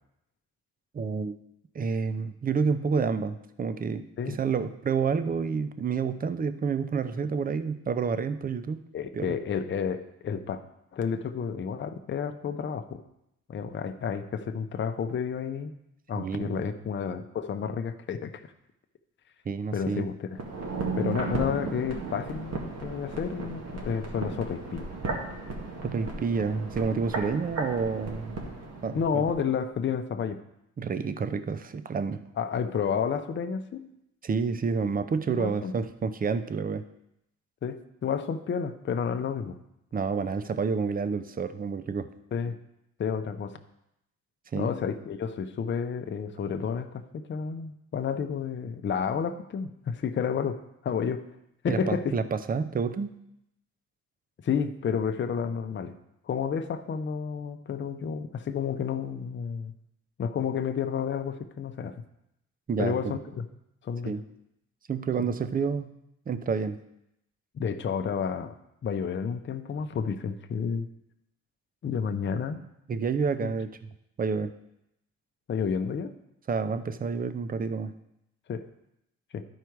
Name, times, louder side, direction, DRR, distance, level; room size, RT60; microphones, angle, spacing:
voice 1, 0.9-1.4 1.7-8.8 9.1-9.3 16.2-16.6 19.5-20.1 25.8-28.4 28.8-29.3 30.8-32.3 34.2-36.9 39.9-42.1 44.5-44.7 51.7-53.2 62.7-63.1 64.1-64.2 64.9-65.9 66.3-66.8 72.9-73.7 74.2-74.5 76.5-77.9, right 5 dB, 30° right, 12 dB, 0.6 m, -29 dB
voice 2, 8.9-10.6 10.9-13.0 13.5-15.7 16.1-18.5 19.7-20.3 21.0-24.9 28.9-30.4 32.4-33.9 35.3-35.7 37.6-39.6 42.3-42.6 43.0-43.6 44.6-50.6 50.8-51.2 51.6-52.1 54.4-55.9 56.2-59.7 60.2-62.0 62.8-63.4 63.8-64.1 65.2-65.3 67.5-68.6 68.8-70.9 71.8-72.6 73.4-73.5 75.5-76.1 78.5-78.7 79.3-79.4, left 6 dB, 40° left, 7 dB, 0.7 m, -31 dB
sound 1, 20.3-29.4 29.7-29.8, right 3 dB, 60° right, 1.8 m, -35 dB
11.5 x 4.7 x 4.6 m, 0.82 s
cardioid pair, 90°, 30 cm